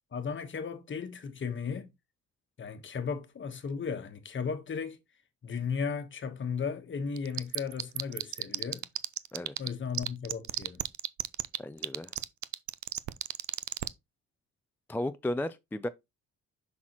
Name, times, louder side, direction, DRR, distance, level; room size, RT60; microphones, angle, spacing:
voice 1, 0.1-1.9 2.6-5.0 5.4-8.8 9.6-10.8, left 6 dB, 40° left, 1.2 m, -35 dB
sound 1, 7.2-9.7 9.9-13.9, right 16 dB, 70° right, 0.5 m, -31 dB
voice 2, 11.6-12.1 14.9-15.9, left 1 dB, 5° left, 0.3 m, -34 dB
6.1 x 5.8 x 2.9 m
cardioid pair, 90°, 30 cm